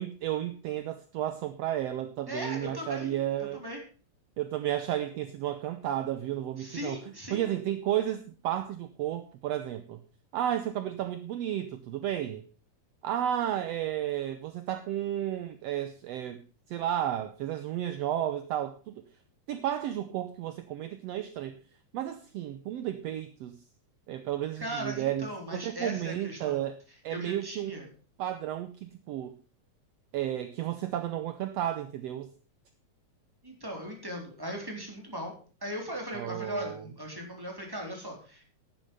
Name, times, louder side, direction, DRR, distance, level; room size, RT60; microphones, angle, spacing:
voice 1, 0.0-3.6 4.4-7.0 7.3-10.0 10.3-12.4 13.0-19.0 19.5-21.6 21.9-23.6 24.1-26.8 27.0-27.8 28.2-29.3 30.1-32.3 36.1-36.8, right 11 dB, 70° right, 11 dB, 1.7 m, -32 dB
voice 2, 2.3-3.8 6.6-7.4 24.6-26.6 27.1-27.9 33.4-35.3 35.6-38.5, equal, 5° right, 1 dB, 3.6 m, -38 dB
11.0 x 10.5 x 5.4 m, 0.37 s
omnidirectional pair, 3.4 m